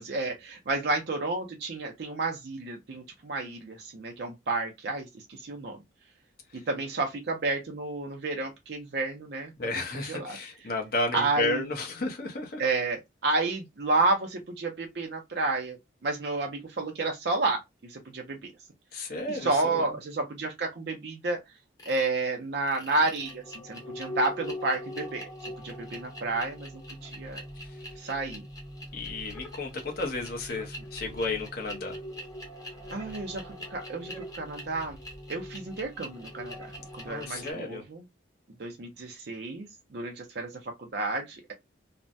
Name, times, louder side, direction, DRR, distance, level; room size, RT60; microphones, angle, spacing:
voice 1, 0.0-5.8 6.7-9.5 9.9-10.4 11.1-11.6 12.6-15.8 16.0-18.5 19.3-21.4 21.9-26.7 27.0-27.4 28.0-28.4 32.9-35.0 35.3-36.5 36.9-38.0 38.6-39.7 39.9-41.5, right 3 dB, 55° right, 0.5 m, -31 dB
voice 2, 9.6-12.6 18.9-20.0 27.6-27.8 28.9-32.0 37.0-37.8, left 2 dB, 50° left, 0.9 m, -33 dB
sound 1, 21.8-22.1 22.6-37.5, left 1 dB, 20° left, 0.9 m, -42 dB
3.2 x 2.1 x 2.6 m
head